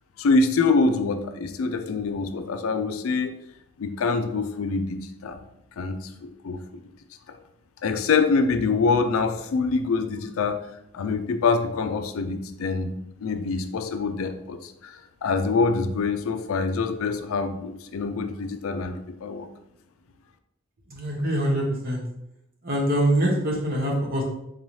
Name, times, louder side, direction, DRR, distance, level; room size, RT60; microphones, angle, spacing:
voice 1, 0.2-3.4 3.8-5.0 5.2-5.4 5.8-6.8 7.8-10.6 10.9-19.5, left 4 dB, 85° left, 8 dB, 0.4 m, -25 dB
voice 2, 20.9-22.0 22.6-24.2, right 1 dB, 45° right, -1 dB, 0.9 m, -24 dB
3.9 x 2.7 x 3.1 m, 0.82 s
head